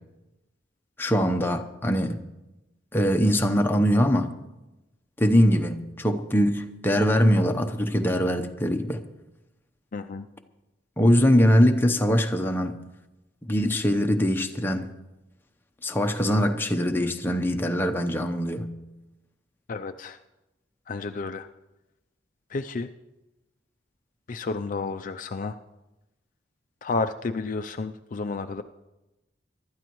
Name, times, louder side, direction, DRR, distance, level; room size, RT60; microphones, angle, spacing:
voice 1, 1.0-2.2 2.9-4.3 5.2-9.0 11.0-12.8 13.4-14.9 15.8-18.7, equal, 10° left, 0.8 m, -22 dB
voice 2, 9.9-10.3 19.7-20.2 20.9-21.5 22.5-22.9 24.3-25.6 26.8-28.6, left 3 dB, 45° left, 0.4 m, -31 dB
24.0 x 12.0 x 3.1 m
head